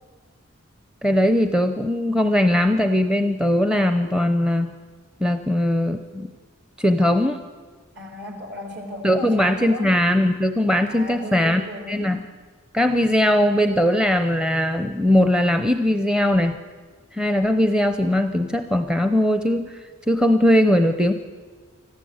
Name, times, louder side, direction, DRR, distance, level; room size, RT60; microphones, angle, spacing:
voice 1, 1.0-4.7 5.2-6.3 6.8-7.4 9.0-12.2 12.7-16.6 17.1-19.7 20.1-21.1, left 1 dB, 5° right, 8 dB, 0.6 m, -20 dB
voice 2, 8.0-9.9 10.9-12.1, left 1 dB, 55° right, 3 dB, 4.4 m, -35 dB
25.5 x 15.0 x 8.0 m, 1.5 s
head